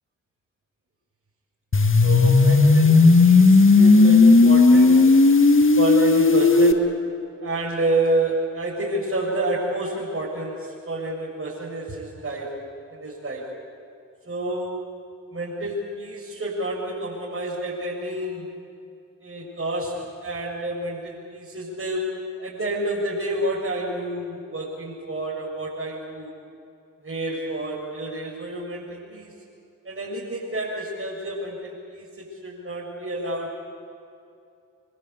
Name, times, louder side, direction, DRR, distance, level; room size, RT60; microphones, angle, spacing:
sound 1, 1.7-6.7, left 3 dB, 30° left, 2.1 m, -14 dB
voice 1, 2.0-5.2 5.8-7.0 7.4-12.6 12.9-13.5 14.3-14.8 15.3-18.5 19.2-26.3 27.0-29.3 29.8-33.6, right 1 dB, 30° right, -6 dB, 7.5 m, -29 dB
25.5 x 24.5 x 8.5 m, 2.6 s
hypercardioid pair, 40°, 42 cm